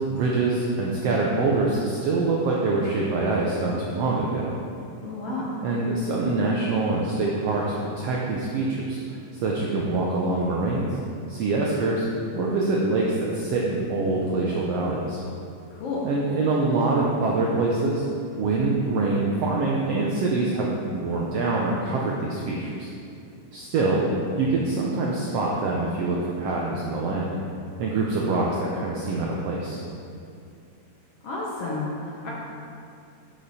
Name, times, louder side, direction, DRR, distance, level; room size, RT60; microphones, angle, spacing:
voice 1, 0.1-4.5 5.6-10.9 11.3-12.1 12.3-15.2 16.0-18.0 18.4-22.9 23.5-24.0 24.4-27.3 27.8-29.8, right 3 dB, 80° right, -3 dB, 1.4 m, -25 dB
voice 2, 5.0-5.5 15.7-16.0 31.2-32.3, left 3 dB, 65° left, -5 dB, 1.5 m, -31 dB
9.5 x 6.0 x 4.2 m, 2.5 s
omnidirectional pair, 3.7 m